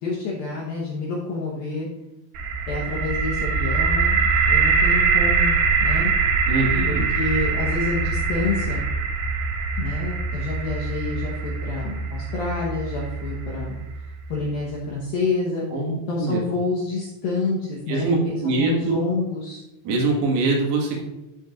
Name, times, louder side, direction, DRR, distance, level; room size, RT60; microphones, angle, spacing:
voice 1, 0.0-1.9 2.7-6.1 6.9-8.8 9.8-13.8 14.3-15.7 16.1-19.6, left 3 dB, 80° left, -4 dB, 2.1 m, -28 dB
sound 1, 2.3-14.2, right 5 dB, 75° right, 3.5 m, -23 dB
voice 2, 6.5-7.1 15.7-16.4 17.9-19.0 19.9-21.0, right 3 dB, 90° right, -2 dB, 4.6 m, -23 dB
13.5 x 7.2 x 2.5 m, 0.95 s
omnidirectional pair, 6.0 m